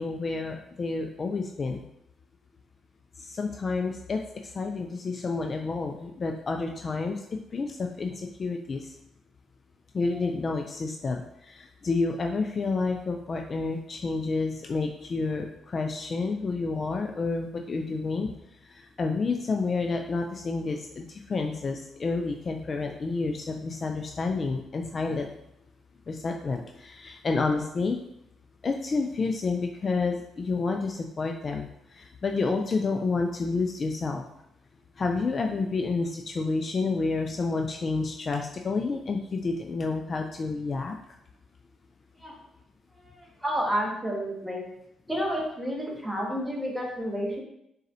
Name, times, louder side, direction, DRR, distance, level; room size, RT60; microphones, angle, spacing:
voice 1, 0.0-1.8 3.2-7.2 7.5-8.9 9.9-18.3 18.7-25.3 26.1-28.0 28.6-34.2 35.0-40.9, left 3 dB, 40° left, 3 dB, 0.3 m, -29 dB
voice 2, 43.0-44.6 45.1-47.4, equal, 5° right, -2 dB, 1.3 m, -30 dB
4.1 x 3.9 x 2.7 m, 0.79 s
cardioid pair, 90°, 0 cm